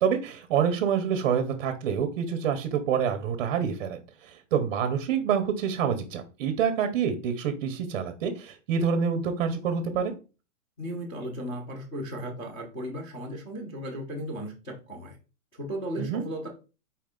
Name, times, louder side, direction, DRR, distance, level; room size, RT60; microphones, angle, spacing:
voice 1, 0.0-10.1 16.0-16.3, right 7 dB, 40° right, 7 dB, 0.6 m, -27 dB
voice 2, 10.8-15.2 15.5-16.5, equal, 10° left, -4 dB, 0.4 m, -36 dB
4.3 x 3.1 x 3.7 m, 0.33 s
hypercardioid pair, 160°, 42 cm